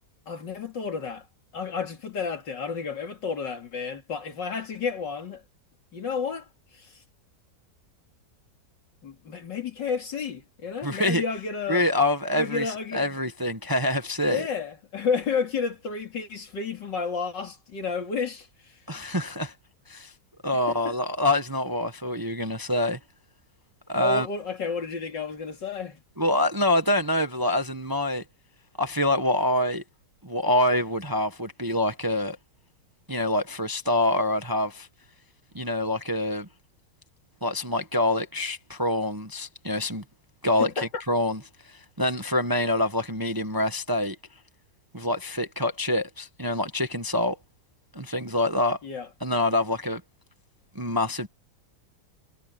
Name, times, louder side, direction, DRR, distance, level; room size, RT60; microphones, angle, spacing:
voice 1, 0.3-1.3 1.5-5.4 5.9-6.9 9.0-11.8 12.3-13.2 14.3-18.7 20.7-20.9 24.0-26.0 40.6-40.9 48.8-49.1, left 5 dB, 85° left, 3.3 m, -31 dB
voice 2, 10.8-11.2 11.7-14.5 18.9-19.5 19.9-20.1 20.4-23.0 23.9-24.3 26.2-28.2 28.8-29.8 30.2-32.4 33.1-34.9 35.5-36.5 37.4-40.0 40.4-41.4 41.7-44.2 44.9-47.4 47.9-48.8 49.2-50.0 50.7-51.3, left 1 dB, 15° right, 0.8 m, -26 dB
omnidirectional pair, 1.9 m